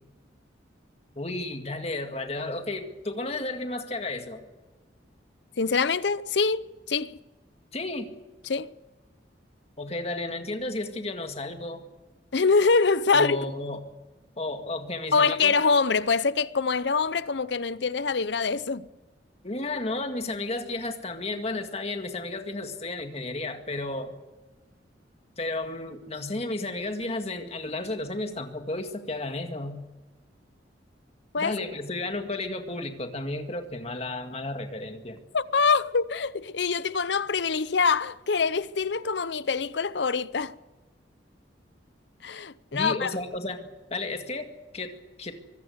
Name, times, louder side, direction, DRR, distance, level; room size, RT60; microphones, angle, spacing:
voice 1, 1.2-4.4 7.7-8.1 9.8-11.8 13.1-13.8 14.4-15.5 19.4-24.2 25.4-29.8 31.4-35.2 42.7-45.4, left 2 dB, 35° left, 1.9 m, -33 dB
voice 2, 5.6-7.2 8.5-8.7 12.3-13.4 15.1-18.9 31.3-31.5 35.3-40.5 42.2-43.1, left 4 dB, 70° left, 0.7 m, -24 dB
24.0 x 15.5 x 8.0 m
head